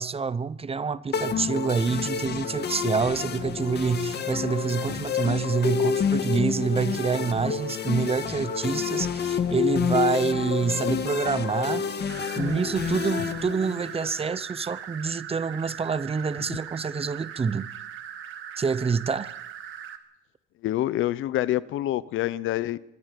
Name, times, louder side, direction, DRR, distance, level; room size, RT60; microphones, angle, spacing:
voice 1, 0.0-12.0 12.4-17.7 18.6-19.4, right 5 dB, 30° right, 0.8 m, -27 dB
sound 1, 1.1-14.2, left 7 dB, 55° left, 1.9 m, -29 dB
sound 2, 12.1-20.0, right 9 dB, 80° right, 2.0 m, -40 dB
voice 2, 20.6-22.8, left 14 dB, 85° left, 0.8 m, -26 dB
25.5 x 20.5 x 5.3 m
cardioid pair, 90°, 20 cm